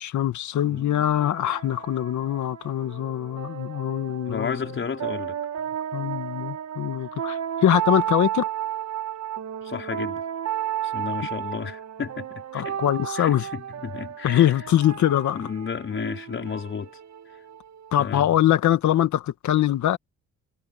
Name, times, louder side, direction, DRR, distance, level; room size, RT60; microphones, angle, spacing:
voice 1, 0.0-4.7 5.9-8.5 12.5-13.5 14.2-15.4 17.9-20.0, left 12 dB, 70° left, 1.8 m, -23 dB
sound 1, 0.6-18.1, right 10 dB, 65° right, 1.6 m, -33 dB
voice 2, 4.3-5.4 9.6-10.2 10.8-12.8 13.2-14.5 15.3-16.9 18.0-18.3, left 6 dB, 40° left, 4.9 m, -32 dB
cardioid pair, 90°, 30 cm